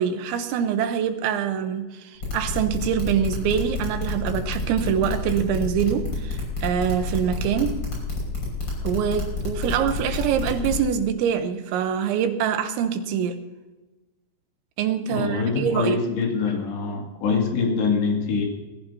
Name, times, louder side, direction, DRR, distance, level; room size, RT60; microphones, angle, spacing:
voice 1, 0.0-7.8 8.9-13.4 14.8-16.0, right 8 dB, 85° right, 8 dB, 3.4 m, -24 dB
sound 1, 2.2-10.8, left 3 dB, 25° left, 6.2 m, -28 dB
voice 2, 15.1-18.5, left 4 dB, 70° left, 0 dB, 4.5 m, -24 dB
20.5 x 15.0 x 2.8 m, 1.1 s
omnidirectional pair, 5.2 m